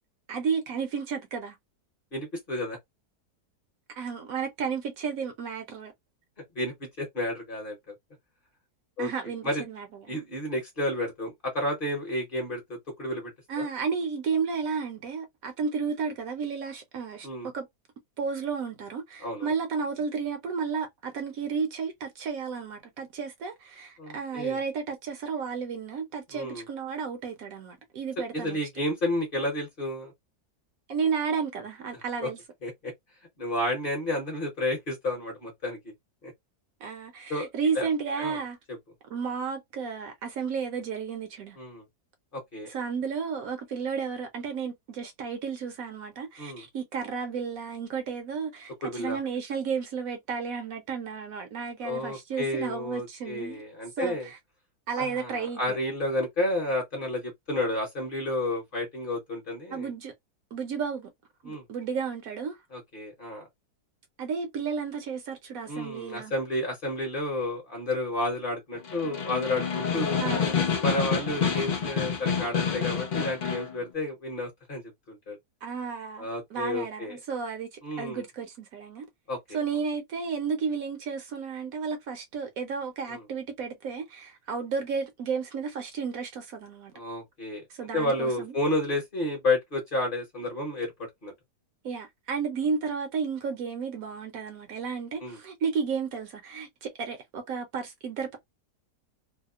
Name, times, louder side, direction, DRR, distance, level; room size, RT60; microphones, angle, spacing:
voice 1, 0.3-1.6 3.9-5.9 9.0-10.2 13.5-17.3 17.5-17.7 18.2-28.6 30.9-32.4 36.8-38.6 39.1-41.6 42.7-53.6 54.0-54.4 54.9-55.8 59.7-60.1 60.5-61.1 61.4-62.6 64.2-66.3 70.2-70.7 71.4-71.6 75.6-79.0 79.5-86.9 87.7-88.5 91.8-98.4, right 5 dB, 70° right, 1.0 m, -32 dB
voice 2, 2.1-2.8 6.6-7.8 9.0-9.1 9.4-9.6 10.1-13.3 13.6-13.7 17.2-17.5 19.2-19.5 24.0-24.6 26.3-26.6 28.3-30.1 32.2-32.3 32.6-32.9 33.4-35.8 36.2-36.3 37.3-37.5 37.7-37.9 38.2-38.4 41.6-41.8 42.3-42.7 46.4-46.6 48.8-49.2 51.8-54.3 55.0-59.9 61.4-61.6 62.7-63.5 65.7-70.2 70.8-74.8 75.1-75.4 76.2-77.2 77.8-78.2 79.3-79.6 83.1-83.2 86.9-87.6 87.9-91.3 95.2-95.4, left 1 dB, 40° left, 0.9 m, -31 dB
Snare drum, 68.7-73.7, left 6 dB, 85° left, 0.4 m, -28 dB
2.7 x 2.0 x 2.4 m
omnidirectional pair, 1.7 m